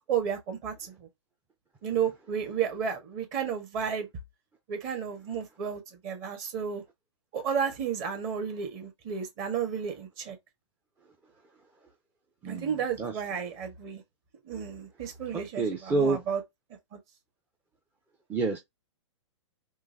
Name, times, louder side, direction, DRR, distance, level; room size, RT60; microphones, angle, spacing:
voice 1, 0.1-1.1 1.8-4.1 4.7-6.8 7.3-10.4 12.4-14.0 14.4-16.4 16.9-17.0, right 7 dB, 35° right, 1.4 m, -32 dB
voice 2, 15.6-16.2 18.3-18.6, right 3 dB, 10° right, 0.5 m, -27 dB
3.7 x 2.9 x 2.7 m
figure-of-eight pair, 115°, 16 cm